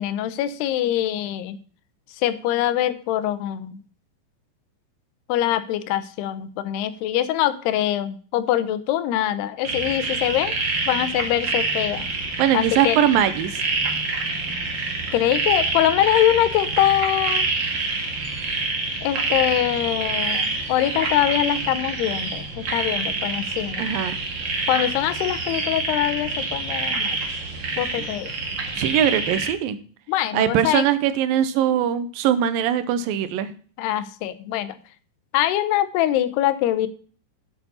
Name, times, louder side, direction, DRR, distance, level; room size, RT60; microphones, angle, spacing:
voice 1, 0.0-1.6 2.2-3.8 5.3-10.5 10.9-12.1 12.5-13.0 15.1-17.5 19.0-23.8 24.7-27.2 27.8-28.3 30.1-30.9 33.8-34.8 35.3-36.9, left 12 dB, 80° left, 13 dB, 2.8 m, -23 dB
sound 1, 9.6-29.5, right 3 dB, 45° right, 1.5 m, -27 dB
voice 2, 12.4-13.6 23.8-24.2 28.7-29.8 30.3-33.5, right 10 dB, 80° right, 12 dB, 2.1 m, -21 dB
8.2 x 8.0 x 5.3 m, 0.43 s
omnidirectional pair, 4.8 m